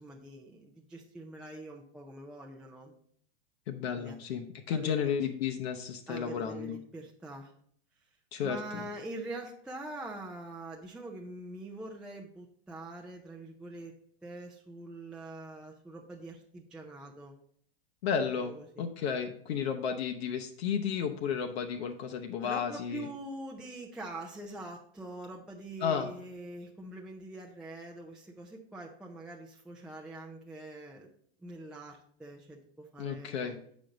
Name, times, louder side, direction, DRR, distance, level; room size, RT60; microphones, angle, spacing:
voice 1, 0.0-3.0 4.0-4.2 4.7-5.1 6.1-7.5 8.4-13.9 14.2-17.3 18.4-18.9 22.4-31.1 31.4-33.6, right 2 dB, 5° right, -1 dB, 0.3 m, -44 dB
voice 2, 3.7-6.8 8.3-8.9 18.0-23.1 25.8-26.1 33.0-33.6, left 7 dB, 70° left, 5 dB, 0.8 m, -33 dB
7.5 x 5.1 x 3.9 m, 0.63 s
hypercardioid pair, 130°, 32 cm